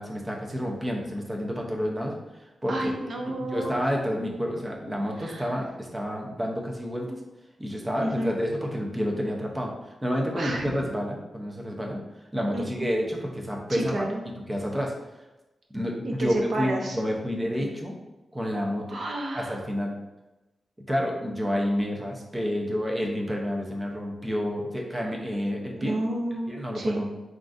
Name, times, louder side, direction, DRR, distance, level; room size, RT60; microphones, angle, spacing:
voice 1, 0.0-2.2 2.6-2.9 3.2-7.2 7.6-12.0 12.3-14.0 14.5-14.9 15.7-18.0 18.3-19.0 19.3-19.9 20.9-26.0 26.5-27.1, equal, 15° right, 0 dB, 0.6 m, -29 dB
voice 2, 2.7-3.7 5.2-5.5 8.0-8.3 10.4-10.7 12.5-12.9 13.7-14.2 16.0-17.0 17.4-17.7 18.9-19.6 25.7-27.0, right 1 dB, 55° right, 0 dB, 0.7 m, -31 dB
3.8 x 3.7 x 2.5 m, 1.0 s
wide cardioid pair, 155°, 0 cm